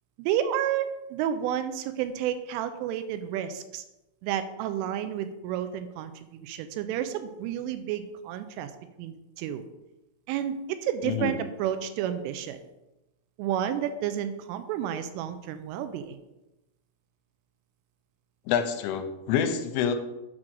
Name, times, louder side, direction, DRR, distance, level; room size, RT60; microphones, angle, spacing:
voice 1, 0.2-3.8 4.2-8.7 9.0-9.6 10.3-12.6 13.4-16.2, right 10 dB, 85° right, 10 dB, 3.0 m, -31 dB
voice 2, 11.0-11.4 18.5-20.0, left 8 dB, 85° left, 7 dB, 3.1 m, -27 dB
7.5 x 3.7 x 6.2 m, 0.98 s
omnidirectional pair, 5.8 m